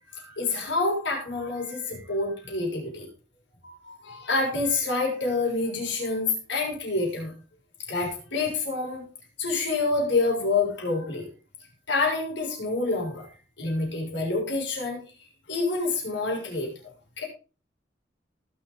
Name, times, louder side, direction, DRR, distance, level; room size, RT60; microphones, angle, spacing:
voice 1, 0.1-3.1 3.6-7.3 7.9-9.0 9.4-11.2 11.9-13.3 13.6-15.0 15.5-16.7 17.2-17.3, left 3 dB, 70° left, -2 dB, 6.8 m, -27 dB
20.0 x 6.7 x 4.0 m, 0.36 s
head